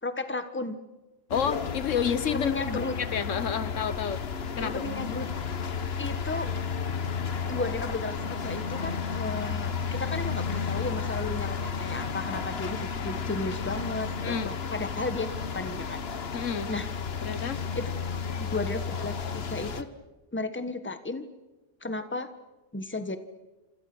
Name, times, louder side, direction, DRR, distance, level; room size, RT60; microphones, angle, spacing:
voice 1, 0.0-0.8 2.3-3.0 4.6-5.3 6.0-6.5 7.5-16.0 16.7-16.9 17.7-17.9 18.4-19.9 20.3-21.3 21.8-22.3 22.7-23.2, left 2 dB, 10° left, 9 dB, 1.3 m, -34 dB
voice 2, 1.3-2.5 3.0-4.2 4.6-4.8 14.2-14.5 16.3-16.7 17.2-17.6, left 7 dB, 75° left, 13 dB, 1.4 m, -29 dB
sound 1, 1.3-19.8, left 6 dB, 55° left, 1.3 m, -32 dB
28.5 x 27.0 x 6.2 m, 1.1 s
omnidirectional pair, 1.3 m